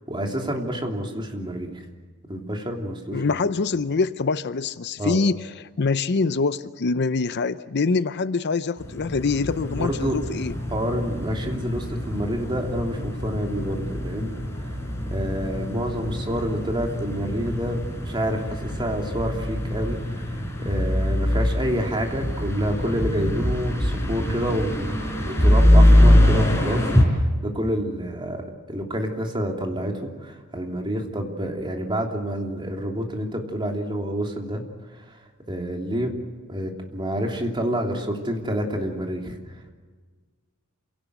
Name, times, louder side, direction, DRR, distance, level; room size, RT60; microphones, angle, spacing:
voice 1, 0.1-1.8 2.3-3.4 5.0-5.2 9.7-10.2 10.7-14.7 15.1-34.6 34.9-35.2 35.5-36.1 36.5-39.4, equal, 20° right, 2 dB, 3.1 m, -28 dB
voice 2, 3.1-5.5 5.8-10.5, left 4 dB, 50° left, 14 dB, 0.6 m, -24 dB
sound 1, 8.8-27.0, left 1 dB, 15° left, 4.7 m, -23 dB
28.0 x 17.5 x 8.2 m, 1.5 s
head